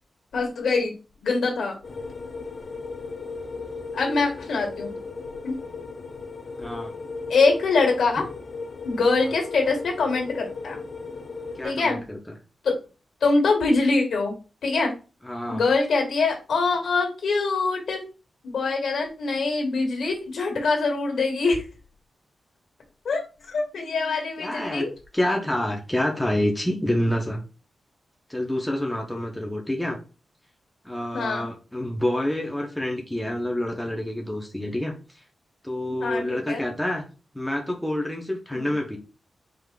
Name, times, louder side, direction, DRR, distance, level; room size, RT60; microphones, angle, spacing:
voice 1, 0.3-0.9 1.2-1.7 3.9-4.9 5.4-5.5 7.3-8.3 8.8-10.8 11.6-12.0 12.6-12.7 13.2-14.3 14.6-14.9 15.5-18.0 18.4-21.6 23.0-24.9 31.1-31.5 36.0-36.6 38.5-38.7, left 3 dB, 85° left, 1 dB, 1.5 m, -24 dB
sound 1, 1.8-11.7, left 4 dB, 40° left, 0.5 m, -36 dB
voice 2, 6.6-6.9 11.6-12.2 15.2-15.6 24.4-24.9 25.1-27.4 28.3-30.0 30.8-34.9 35.6-37.1 37.3-39.0, left 1 dB, 5° left, 0 dB, 0.7 m, -27 dB
4.8 x 3.6 x 2.2 m, 0.33 s
wide cardioid pair, 150°, 0 cm